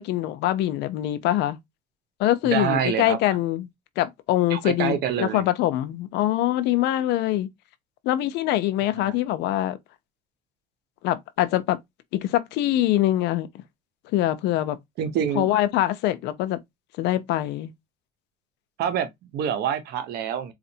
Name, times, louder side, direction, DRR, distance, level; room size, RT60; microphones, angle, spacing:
voice 1, 0.0-1.6 2.2-3.7 4.0-7.5 8.0-9.8 11.0-11.8 12.1-13.6 14.1-14.8 15.4-16.6 17.0-17.7, left 14 dB, 85° left, 0.6 m, -24 dB
voice 2, 2.4-3.2 4.5-5.5 8.9-9.2 15.0-15.5 18.8-20.5, right 8 dB, 75° right, 0.9 m, -26 dB
4.1 x 2.4 x 2.7 m
cardioid pair, 110°, 17 cm